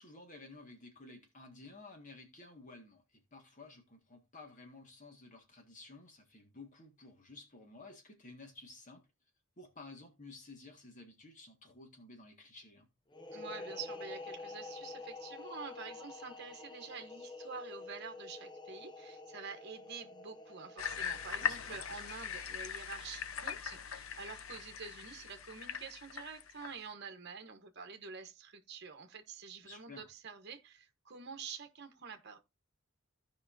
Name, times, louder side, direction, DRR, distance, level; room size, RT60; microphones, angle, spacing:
voice 1, 0.0-9.0 9.6-12.9 21.4-21.8 29.6-30.1, left 3 dB, 40° left, 1.8 m, -53 dB
sound 1, 13.1-22.6, left 3 dB, 20° left, 0.5 m, -48 dB
voice 2, 13.3-32.4, right 5 dB, 55° right, 1.1 m, -48 dB
sound 2, 20.8-26.7, left 7 dB, 75° left, 0.7 m, -41 dB
15.5 x 5.4 x 2.6 m
head